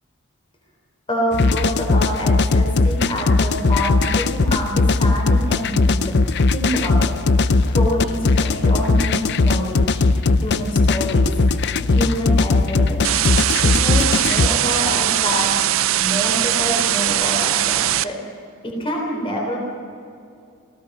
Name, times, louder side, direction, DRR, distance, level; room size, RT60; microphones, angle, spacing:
voice 1, 1.1-6.1 6.5-7.2 7.7-10.0 10.4-11.4 11.9-13.1 13.6-15.6 16.0-18.2 18.6-19.6, equal, 25° left, -1 dB, 3.9 m, -26 dB
sound 1, 1.3-14.5, left 3 dB, 50° left, 0.5 m, -18 dB
sound 2, 10.1-15.6, equal, 5° right, 1.2 m, -39 dB
sound 3, 13.0-18.0, right 12 dB, 65° right, 0.5 m, -20 dB
29.5 x 16.5 x 5.6 m, 2.4 s
head